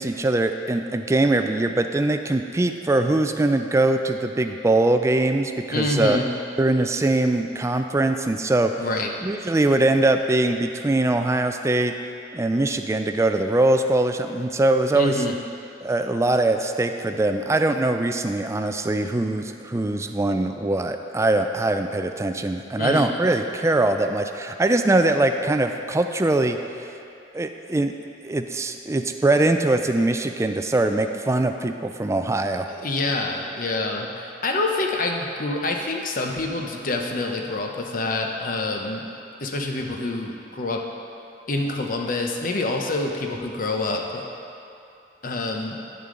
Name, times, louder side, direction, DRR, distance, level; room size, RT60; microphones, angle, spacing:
voice 1, 0.0-6.2 6.6-8.7 9.2-11.9 12.3-15.1 15.8-26.6 27.3-27.9 28.2-32.7, right 2 dB, 15° right, 6 dB, 0.3 m, -22 dB
voice 2, 5.7-6.2 8.8-9.1 14.9-15.3 22.8-23.1 32.7-39.1 39.4-40.8 41.5-44.3 45.2-45.8, left 2 dB, 50° left, 2 dB, 0.8 m, -26 dB
10.5 x 6.7 x 3.8 m, 2.6 s
head